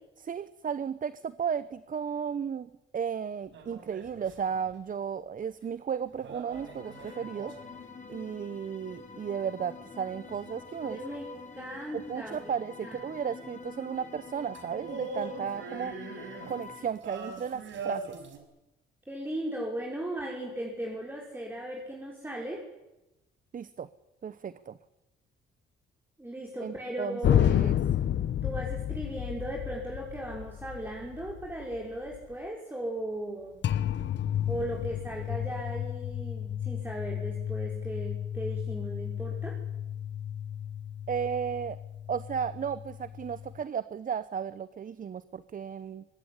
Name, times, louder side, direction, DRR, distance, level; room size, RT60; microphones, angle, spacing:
voice 1, 0.2-7.5 8.1-11.0 11.9-16.0 16.5-18.2 23.5-23.9 24.2-24.8 26.6-27.8 41.1-41.8 42.1-46.0, right 7 dB, 45° right, 15 dB, 1.0 m, -34 dB
sound 1, 3.5-4.7 6.2-7.8 12.3-12.4 14.5-18.4, right 4 dB, 70° right, 5.2 m, -41 dB
sound 2, 6.5-16.9, left 4 dB, 40° left, 4.5 m, -46 dB
voice 2, 10.8-11.3 11.5-12.4 12.8-13.0 19.1-22.6 26.2-27.9 28.4-33.6 34.5-39.6, right 1 dB, 10° right, -1 dB, 5.7 m, -37 dB
sound 3, 27.2-32.3 33.6-43.6, left 10 dB, 65° left, 1.3 m, -32 dB
23.5 x 21.0 x 10.0 m, 0.96 s
cardioid pair, 90°, 20 cm